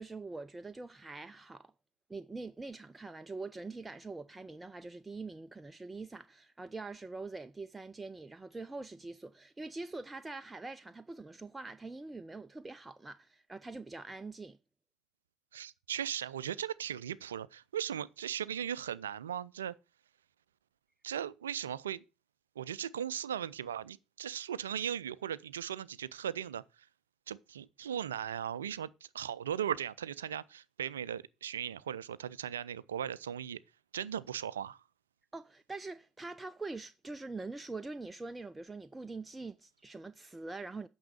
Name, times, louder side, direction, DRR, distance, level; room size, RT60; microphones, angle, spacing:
voice 1, 0.0-1.7 2.1-14.6 35.3-40.9, right 3 dB, 15° right, 0.5 m, -44 dB
voice 2, 15.5-19.8 21.0-22.0 22.6-26.9 27.3-33.6 33.9-34.8, right 9 dB, 80° right, 0.4 m, -38 dB
9.3 x 6.1 x 6.6 m
figure-of-eight pair, 55°, 0 cm